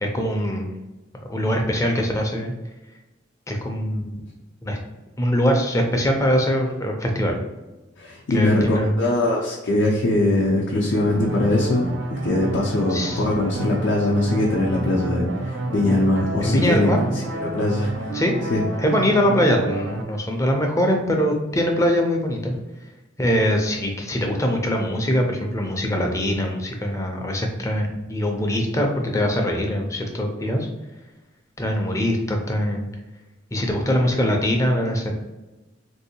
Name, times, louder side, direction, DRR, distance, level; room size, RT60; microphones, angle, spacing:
voice 1, 0.0-0.7 1.3-2.5 3.5-4.2 4.6-4.8 5.2-7.4 8.3-8.9 12.9-13.2 16.4-17.0 18.1-18.3 18.8-22.6 23.2-30.7 31.6-32.9 33.5-35.1, equal, 15° left, 2 dB, 0.4 m, -22 dB
voice 2, 8.0-11.9 12.2-16.9 17.4-17.9 18.5-18.6, left 1 dB, 65° left, -4 dB, 0.5 m, -21 dB
sound 1, 11.1-20.0, right 2 dB, 75° right, 0.5 m, -30 dB
3.6 x 2.7 x 2.7 m, 1.1 s
head